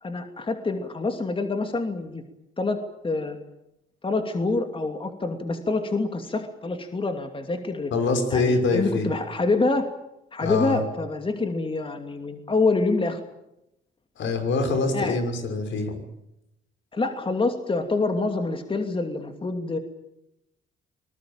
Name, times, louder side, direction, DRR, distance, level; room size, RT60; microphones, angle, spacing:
voice 1, 0.0-2.2 2.6-2.8 3.0-3.4 4.0-7.9 8.3-9.9 10.3-13.2 14.9-15.2 16.9-19.8, left 3 dB, 25° left, 6 dB, 2.8 m, -26 dB
voice 2, 7.9-9.1 10.4-10.8 14.2-16.0, left 3 dB, 70° left, 6 dB, 6.1 m, -24 dB
25.5 x 20.5 x 9.0 m, 0.85 s
cardioid pair, 90°, 20 cm